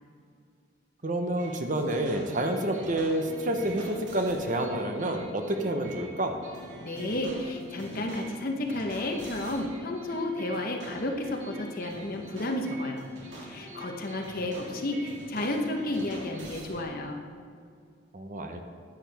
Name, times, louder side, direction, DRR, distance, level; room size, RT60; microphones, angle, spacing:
voice 1, 1.0-6.4 18.1-18.6, right 1 dB, 40° right, 4 dB, 0.8 m, -29 dB
sound 1, 1.4-16.9, equal, 65° right, 2.2 m, -44 dB
voice 2, 6.8-13.0 13.4-17.2, left 1 dB, 45° left, 2 dB, 1.0 m, -32 dB
10.5 x 9.7 x 3.5 m, 2.3 s
head